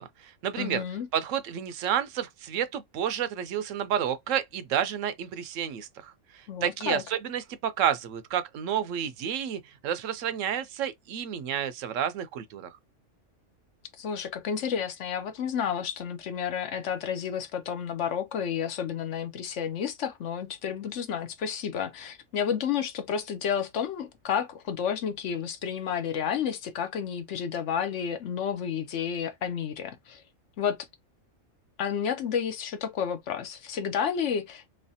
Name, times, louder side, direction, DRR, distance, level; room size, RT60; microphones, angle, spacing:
voice 1, 0.0-0.8 1.1-12.7, right 9 dB, 75° right, 0.9 m, -30 dB
voice 2, 0.6-1.1 6.5-7.0 14.0-30.2 30.6-30.8 31.8-34.7, left 8 dB, 65° left, 0.9 m, -31 dB
3.2 x 3.1 x 2.7 m
omnidirectional pair, 1.4 m